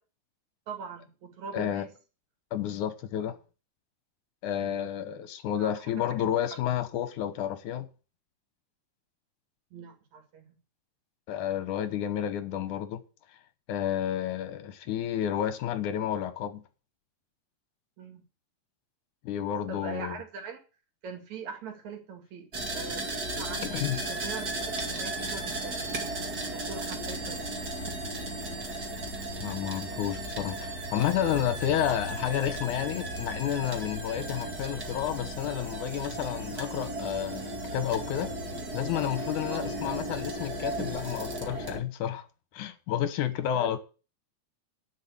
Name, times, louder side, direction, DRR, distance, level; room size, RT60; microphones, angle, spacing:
voice 1, 0.7-1.9 4.5-4.8 5.6-6.3 9.7-10.6 18.0-18.2 19.7-20.6 21.0-23.8 24.1-25.9 26.5-27.6 39.5-39.7 43.4-43.7, right 5 dB, 65° right, 3.5 m, -42 dB
voice 2, 1.5-1.9 2.5-3.4 4.4-7.9 11.3-13.0 13.7-16.6 19.3-20.2 23.6-24.0 29.4-38.4 38.7-42.3 42.5-43.8, left 10 dB, 80° left, 2.5 m, -31 dB
sound 1, 22.5-41.8, right 1 dB, 35° right, 2.4 m, -35 dB
10.5 x 6.0 x 8.4 m
omnidirectional pair, 3.6 m